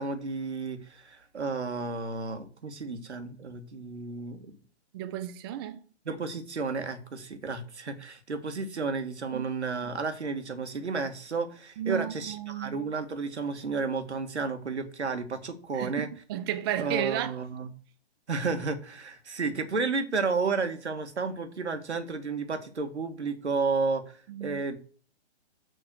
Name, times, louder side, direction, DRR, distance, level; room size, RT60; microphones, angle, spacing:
voice 1, 0.0-4.5 6.1-16.1 16.8-17.7 18.3-24.8, right 4 dB, 85° right, 2.1 m, -32 dB
voice 2, 4.9-5.8 9.3-9.5 11.8-12.8 15.7-17.4 24.3-24.6, right 11 dB, 25° right, 0.4 m, -33 dB
6.7 x 6.0 x 6.3 m
hypercardioid pair, 135°, 33 cm